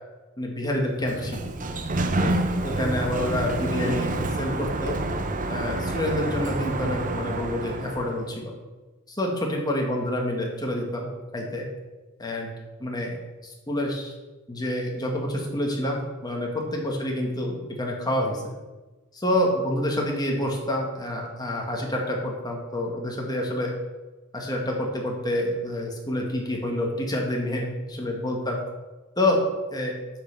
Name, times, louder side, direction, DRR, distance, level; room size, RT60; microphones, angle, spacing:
voice 1, 0.4-1.4 2.2-4.1 4.4-5.0 5.5-8.5 9.1-11.6 12.2-12.5 12.8-13.2 13.4-14.1 14.5-18.5 19.1-23.7 24.3-28.6 29.2-29.4 29.7-29.9, left 1 dB, 20° left, 0 dB, 1.8 m, -28 dB
Sliding door, 0.9-8.3, right 2 dB, 40° right, 0.8 m, -28 dB
7.8 x 5.7 x 6.8 m, 1.2 s
head